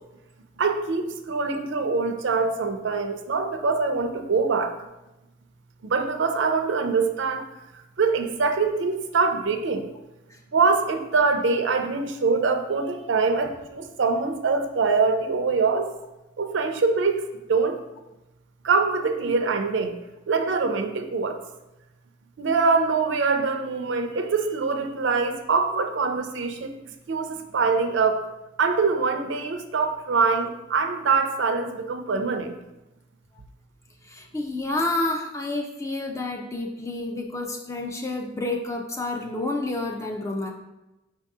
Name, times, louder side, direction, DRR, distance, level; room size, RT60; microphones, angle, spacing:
voice 1, 0.6-4.7 5.8-7.5 8.0-9.9 10.5-15.9 16.4-17.8 18.6-19.9 20.3-21.4 22.4-26.8 27.1-28.3 28.6-32.6, right 4 dB, 70° right, 6 dB, 0.4 m, -24 dB
voice 2, 34.1-40.5, left 2 dB, 15° left, 2 dB, 0.4 m, -29 dB
5.3 x 2.8 x 3.4 m, 0.99 s
head